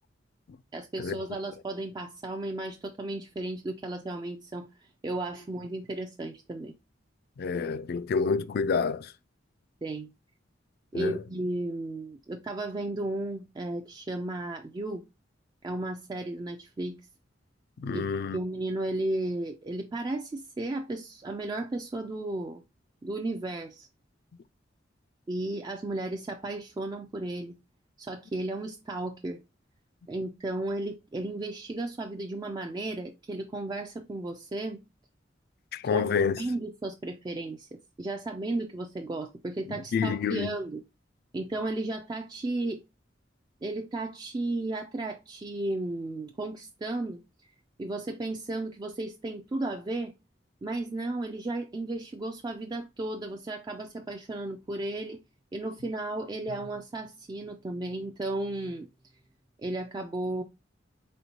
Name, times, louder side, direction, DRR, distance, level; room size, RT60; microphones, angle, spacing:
voice 1, 0.7-6.7 9.8-10.1 10.9-15.0 15.6-17.0 17.9-18.0 18.3-22.6 23.0-23.9 25.3-27.6 28.0-29.4 30.1-34.8 35.9-36.1 36.4-40.8 41.3-42.8 43.6-47.2 47.8-50.1 50.6-55.2 55.5-58.9 59.6-60.4, right 2 dB, 20° right, 0.3 m, -34 dB
voice 2, 7.4-9.1 10.9-11.2 17.8-18.4 35.7-36.4 39.9-40.5, left 5 dB, 55° left, 0.3 m, -28 dB
4.3 x 3.6 x 2.7 m
head